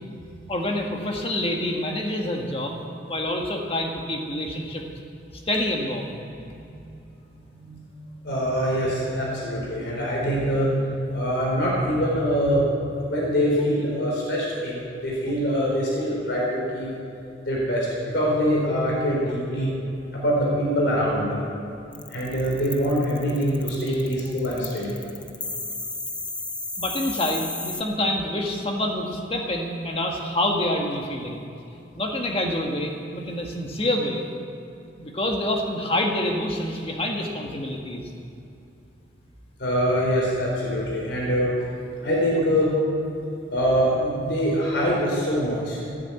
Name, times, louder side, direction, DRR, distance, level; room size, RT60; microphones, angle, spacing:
voice 1, 0.5-4.8 5.3-6.2 23.9-24.0 26.8-31.4 31.9-34.2 35.0-38.1, left 1 dB, 30° left, 1 dB, 1.7 m, -27 dB
voice 2, 6.5-6.9 7.3-7.8 8.2-12.6 13.0-16.9 17.5-17.9 18.1-19.7 20.1-21.4 22.1-25.0 39.6-41.5 42.0-42.8 43.5-45.8, equal, 65° left, -4 dB, 3.8 m, -24 dB
sound 1, 21.9-27.8, left 2 dB, 5° left, 0.5 m, -33 dB
14.5 x 9.7 x 8.3 m, 2.7 s
head